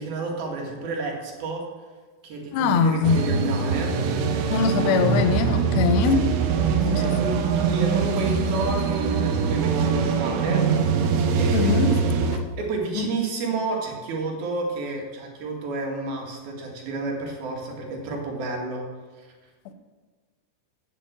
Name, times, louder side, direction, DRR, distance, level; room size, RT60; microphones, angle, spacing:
voice 1, 0.0-1.6 2.2-3.9 6.8-18.9 19.2-19.3, right 3 dB, 65° right, 2.9 m, -31 dB
voice 2, 2.5-3.2 4.5-6.3 6.8-7.2 11.5-11.9 13.0-13.1, left 5 dB, 80° left, 2.5 m, -22 dB
sound 1, 3.0-12.4, right 5 dB, 85° right, 3.3 m, -23 dB
9.0 x 7.2 x 7.8 m
omnidirectional pair, 5.5 m